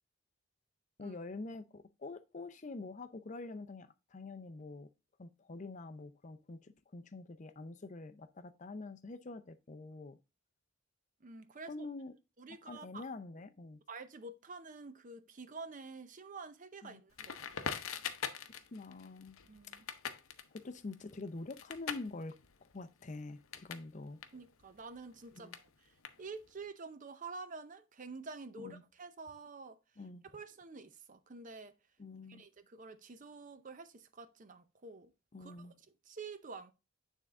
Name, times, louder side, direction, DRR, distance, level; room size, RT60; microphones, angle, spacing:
voice 1, 1.0-4.9 5.2-10.2 11.7-12.1 12.7-13.8 16.8-17.0 18.7-19.4 20.6-22.3 22.7-24.2 25.3-25.6 28.6-28.8 30.0-30.2 32.0-32.4 35.3-35.7, left 3 dB, 35° left, 0.5 m, -46 dB
voice 2, 11.2-11.9 12.4-13.1 13.9-17.8 19.5-19.9 24.3-29.8 30.2-31.7 32.3-35.1 35.4-35.7 36.1-36.7, right 4 dB, 40° right, 0.6 m, -49 dB
Crackle, 17.2-23.9 24.2-26.6, left 7 dB, 90° left, 0.7 m, -44 dB
9.0 x 3.6 x 3.6 m
head